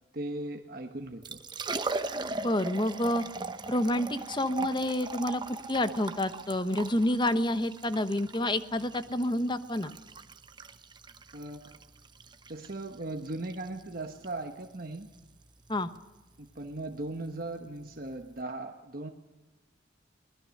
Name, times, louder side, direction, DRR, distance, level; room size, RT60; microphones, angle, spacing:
voice 1, 0.1-1.4 11.3-11.6 12.5-15.1 16.4-19.1, right 2 dB, 50° right, 4 dB, 1.3 m, -38 dB
Liquid, 1.0-18.4, right 3 dB, 25° right, 1.0 m, -40 dB
voice 2, 2.4-3.2 3.7-5.4 5.7-9.9 15.7-15.9, left 1 dB, 25° left, 11 dB, 1.0 m, -28 dB
24.0 x 20.0 x 6.5 m, 1.1 s
head